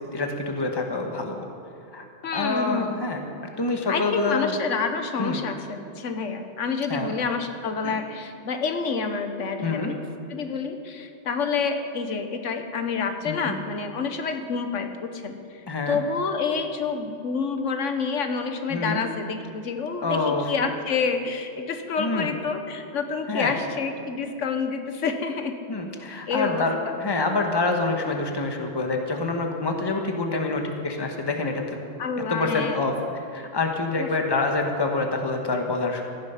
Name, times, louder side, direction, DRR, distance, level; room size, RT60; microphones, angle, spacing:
voice 1, 0.1-1.5 1.9-2.1 2.3-3.2 3.6-4.5 5.2-5.4 6.9-7.1 7.8-8.0 9.6-9.9 13.2-13.6 15.7-16.0 18.7-19.0 20.0-20.5 22.0-22.3 23.3-23.6 25.7-31.6 32.3-36.1, left 3 dB, 20° left, 3 dB, 1.1 m, -26 dB
voice 2, 2.2-3.0 3.9-10.0 10.3-15.6 15.9-25.6 26.3-26.9 32.0-32.8 34.0-34.1, left 5 dB, 85° left, 7 dB, 1.3 m, -28 dB
16.0 x 10.5 x 5.7 m, 2.5 s
omnidirectional pair, 1.3 m